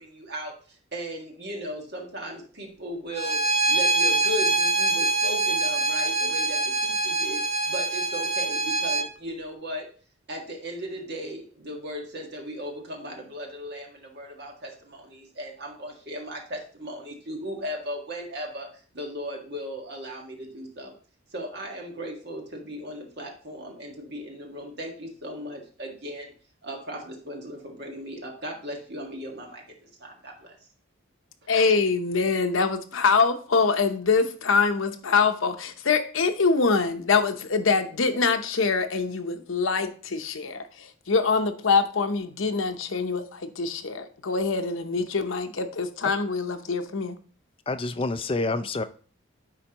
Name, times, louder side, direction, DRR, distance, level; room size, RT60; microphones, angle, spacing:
voice 1, 0.0-9.9 10.3-20.9 21.3-26.3 26.6-30.6 31.4-31.5, equal, 55° right, 1.7 m, -37 dB
Bowed string instrument, 3.1-9.1, right 2 dB, 30° right, 0.5 m, -24 dB
voice 2, 31.5-47.2, left 4 dB, 80° left, 0.8 m, -24 dB
voice 3, 47.7-48.8, left 2 dB, 25° left, 0.4 m, -27 dB
9.8 x 4.4 x 2.9 m
head